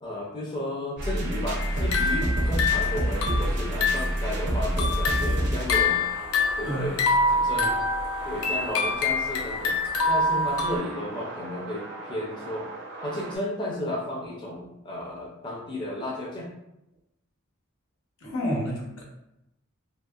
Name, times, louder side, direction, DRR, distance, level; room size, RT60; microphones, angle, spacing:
voice 1, 0.0-6.0 6.6-7.0 7.3-7.8 8.2-9.8 10.1-12.7 13.0-16.5, left 1 dB, 20° left, -3 dB, 0.5 m, -33 dB
sound 1, 1.0-13.4, right 1 dB, 60° right, 0.6 m, -31 dB
sound 2, 1.6-4.2 4.6-10.8, left 3 dB, 90° left, 0.5 m, -26 dB
voice 2, 18.2-19.0, equal, 75° left, -2 dB, 0.8 m, -30 dB
2.7 x 2.7 x 2.3 m, 0.86 s
head